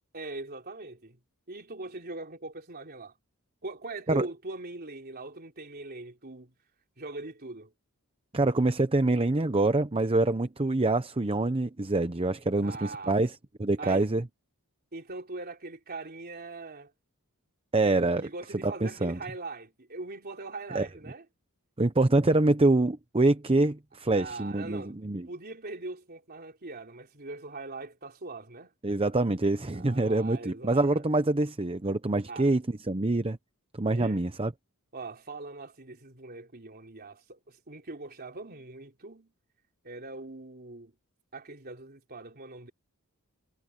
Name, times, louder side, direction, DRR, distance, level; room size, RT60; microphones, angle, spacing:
voice 1, 0.1-1.2 1.5-3.1 3.6-6.5 7.0-7.7 12.6-13.2 13.8-14.1 14.9-16.9 18.2-21.3 24.1-25.0 25.3-28.7 29.7-31.0 32.3-32.5 33.9-34.2 34.9-39.3 39.8-40.9 41.3-42.7, right 2 dB, 45° right, 3.8 m, -41 dB
voice 2, 8.3-13.3 13.6-14.2 17.7-18.3 18.6-19.2 20.7-20.9 21.8-25.3 28.8-33.4 33.8-34.5, right 2 dB, 25° right, 0.8 m, -25 dB
head